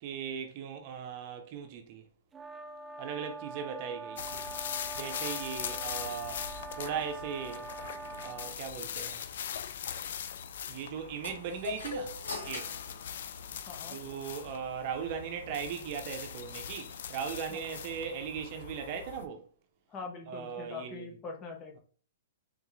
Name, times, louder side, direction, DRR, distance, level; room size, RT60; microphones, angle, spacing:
voice 1, 0.0-2.0 3.0-4.4 5.0-6.4 6.8-7.7 8.2-9.2 10.7-12.1 12.4-12.7 13.9-19.5 20.3-21.1, right 7 dB, 40° right, 0.7 m, -38 dB
sound 1, 2.3-8.6, right 3 dB, 15° right, 0.3 m, -43 dB
sound 2, 4.2-19.2, left 8 dB, 65° left, 0.5 m, -41 dB
sound 3, 11.2-13.9, left 4 dB, 85° left, 2.2 m, -41 dB
voice 2, 13.7-14.0 17.5-17.6 19.9-21.8, left 4 dB, 20° left, 1.1 m, -43 dB
3.9 x 3.5 x 3.2 m
hypercardioid pair, 145°, 0 cm